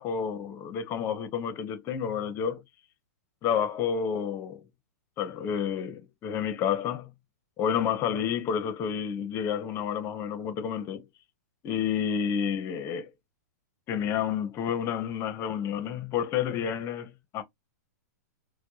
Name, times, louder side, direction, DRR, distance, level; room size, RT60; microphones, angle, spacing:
voice 1, 0.0-2.6 3.4-4.6 5.2-7.1 7.6-11.0 11.6-13.1 13.9-17.4, left 8 dB, 30° left, 0.7 m, -30 dB
4.5 x 2.1 x 2.7 m
hypercardioid pair, 135°, 9 cm